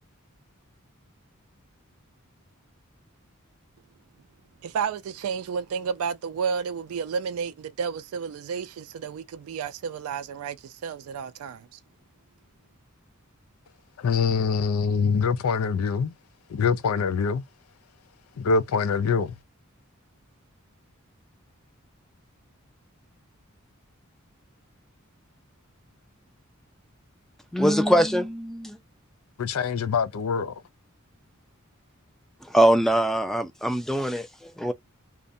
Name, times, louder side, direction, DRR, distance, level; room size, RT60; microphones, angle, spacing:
voice 1, 4.6-11.8, right 6 dB, 85° right, 0.3 m, -31 dB
voice 2, 14.0-16.1 16.5-17.4 18.4-19.3 29.4-30.5, left 5 dB, 80° left, 0.4 m, -24 dB
voice 3, 27.5-28.8 32.4-34.7, equal, ahead, 0.4 m, -22 dB
2.4 x 2.1 x 2.5 m
head